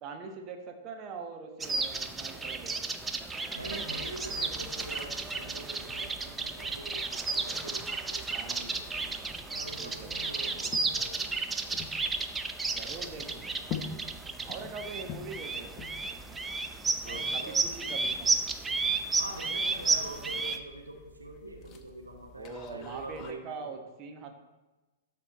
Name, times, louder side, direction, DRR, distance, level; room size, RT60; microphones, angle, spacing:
voice 1, 0.0-2.9 8.3-8.7 9.8-10.3 12.7-13.7 14.4-15.9 17.0-18.3 22.4-24.3, right 4 dB, 35° right, 4 dB, 1.1 m, -43 dB
sound 1, 1.6-20.6, right 3 dB, 10° right, 0.6 m, -33 dB
voice 2, 3.5-8.3 9.5-11.3 17.0-17.6 19.2-23.7, right 2 dB, 85° right, 2 dB, 1.0 m, -44 dB
sound 2, 3.6-23.3, left 6 dB, 30° left, 0.8 m, -48 dB
12.5 x 4.4 x 4.1 m, 1.1 s
figure-of-eight pair, 105°, 0 cm